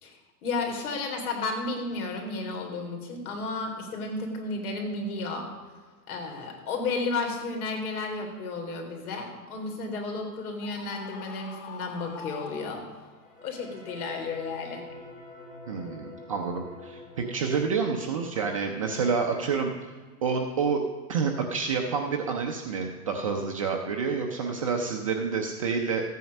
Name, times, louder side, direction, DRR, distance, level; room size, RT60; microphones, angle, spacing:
voice 1, 0.0-5.5 6.1-12.8 13.4-14.9, left 3 dB, 60° left, 2 dB, 3.6 m, -33 dB
Screaming, 10.6-13.3, left 7 dB, 40° left, 1.4 m, -44 dB
sound 1, 13.1-19.6, left 2 dB, 20° left, 2.6 m, -46 dB
voice 2, 15.7-19.7 20.2-20.8 21.1-26.0, right 5 dB, 25° right, 2 dB, 0.4 m, -28 dB
14.0 x 9.3 x 5.3 m, 1.4 s
hypercardioid pair, 155°, 48 cm